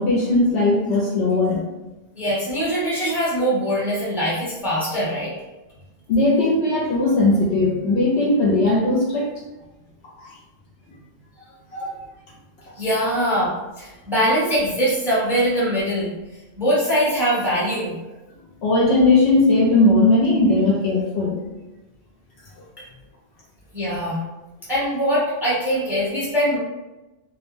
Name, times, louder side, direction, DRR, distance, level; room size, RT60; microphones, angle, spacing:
voice 1, 0.0-1.7 6.1-9.3 10.2-10.3 11.7-11.9 18.6-21.4, left 2 dB, 65° left, -3 dB, 0.8 m, -18 dB
voice 2, 2.2-5.3 12.8-16.1 16.6-17.9 23.7-24.2 24.7-26.6, equal, ahead, -7 dB, 0.7 m, -22 dB
2.4 x 2.1 x 3.1 m, 1.1 s
omnidirectional pair, 1.3 m